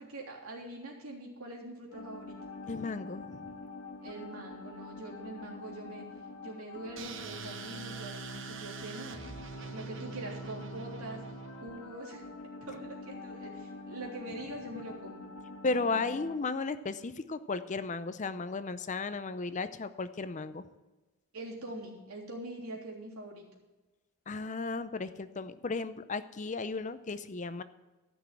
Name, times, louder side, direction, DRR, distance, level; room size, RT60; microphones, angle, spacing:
voice 1, 0.0-2.5 4.0-6.0 6.4-9.2 9.6-11.2 11.6-12.2 12.6-15.2 21.3-23.4, right 1 dB, 80° right, -2 dB, 3.3 m, -44 dB
sound 1, 1.9-16.4, left 2 dB, 75° left, 1.9 m, -46 dB
voice 2, 2.6-3.5 15.6-20.6 24.3-27.6, left 3 dB, 35° left, 12 dB, 0.5 m, -35 dB
sound 2, 7.0-11.7, right 5 dB, 60° right, 1.0 m, -44 dB
14.0 x 6.1 x 7.5 m, 1.2 s
head